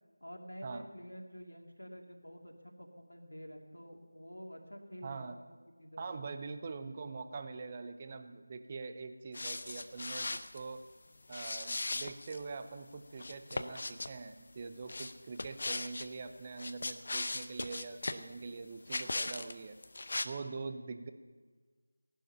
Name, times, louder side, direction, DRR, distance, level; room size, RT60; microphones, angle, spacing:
voice 1, 0.2-5.4 5.8-6.3, equal, 75° left, 1 dB, 2.7 m, -49 dB
voice 2, 5.0-5.4 6.0-10.8 11.3-19.8 20.2-21.1, right 4 dB, 20° right, 9 dB, 0.6 m, -44 dB
sound 1, 9.3-10.6 11.3-12.4 13.2-14.1 14.9-16.1 16.5-18.2 18.9-19.5 19.8-20.2, left 2 dB, 40° left, 0.6 m, -38 dB
17.5 x 11.5 x 5.7 m, 1.4 s
figure-of-eight pair, 165°, 0 cm